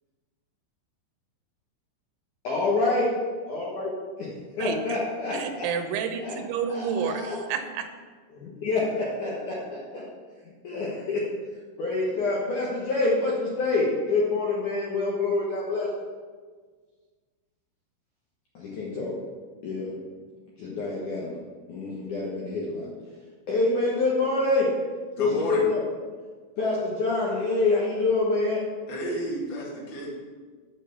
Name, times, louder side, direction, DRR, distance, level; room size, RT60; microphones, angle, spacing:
voice 1, 2.4-3.1 3.5-3.9 4.2-4.3 4.6-5.7 6.2-6.3 6.7-7.4 8.3-10.0 10.6-11.2 11.8-15.9 18.6-19.1 19.6-19.9 20.6-21.3 21.7-22.9 23.5-24.7 25.2-25.8 26.6-28.6, left 3 dB, 80° left, -5 dB, 1.8 m, -26 dB
voice 2, 5.3-7.9, right 7 dB, 80° right, 5 dB, 3.1 m, -30 dB
voice 3, 25.1-25.6 28.9-30.1, right 1 dB, 40° left, -5 dB, 1.8 m, -31 dB
9.2 x 5.6 x 7.1 m, 1.5 s
omnidirectional pair, 5.7 m